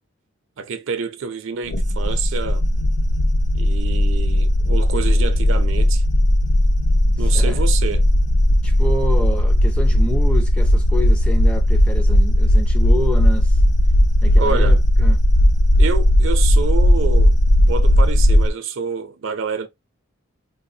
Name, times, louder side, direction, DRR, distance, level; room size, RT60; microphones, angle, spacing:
voice 1, 0.6-2.6 3.5-6.0 7.2-8.0 14.4-14.8 15.8-17.4 17.7-19.7, right 5 dB, 60° right, 0.5 m, -27 dB
sound 1, 1.7-18.5, left 1 dB, 70° left, 0.5 m, -16 dB
voice 2, 7.2-7.6 8.6-13.6 14.2-15.2, left 1 dB, 5° left, 0.4 m, -28 dB
3.9 x 2.0 x 2.7 m
head